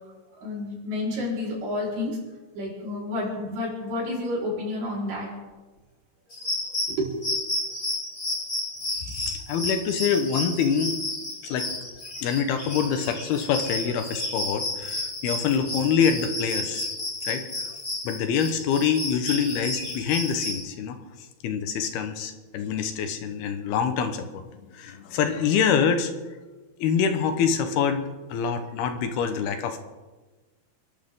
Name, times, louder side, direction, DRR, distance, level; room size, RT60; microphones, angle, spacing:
voice 1, 0.1-2.2 2.5-5.3 7.0-7.1, left 1 dB, 75° right, -5 dB, 6.8 m, -30 dB
sound 1, 6.3-20.6, left 2 dB, 30° left, 6.8 m, -31 dB
voice 2, 9.0-11.0 11.4-11.7 12.2-16.9 17.2-17.6 18.0-21.0 21.4-24.4 24.7-26.1 26.8-29.8, left 7 dB, 80° left, 7 dB, 3.2 m, -25 dB
28.5 x 12.0 x 3.9 m, 1.2 s
omnidirectional pair, 4.5 m